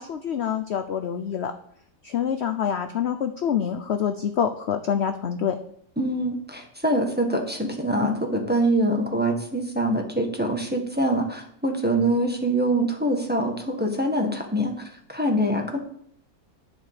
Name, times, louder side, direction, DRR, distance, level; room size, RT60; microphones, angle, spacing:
voice 1, 0.0-1.5 2.0-5.6, left 8 dB, 55° left, 8 dB, 0.8 m, -26 dB
voice 2, 6.0-15.8, right 1 dB, 5° right, 2 dB, 1.5 m, -24 dB
11.5 x 5.4 x 8.5 m, 0.68 s
omnidirectional pair, 1.8 m